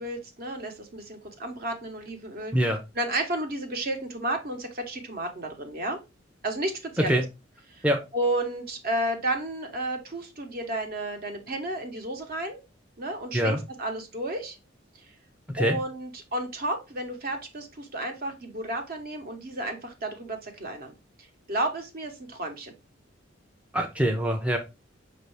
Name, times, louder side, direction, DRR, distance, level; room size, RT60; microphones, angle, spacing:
voice 1, 0.0-2.5 2.9-6.0 6.4-7.2 7.7-7.8 8.1-12.6 13.0-14.6 15.0-15.1 15.6-20.9 21.2-22.7, right 1 dB, 50° right, 5 dB, 1.0 m, -32 dB
voice 2, 23.7-24.6, equal, 5° right, 3 dB, 0.5 m, -24 dB
5.2 x 2.7 x 3.2 m, 0.25 s
head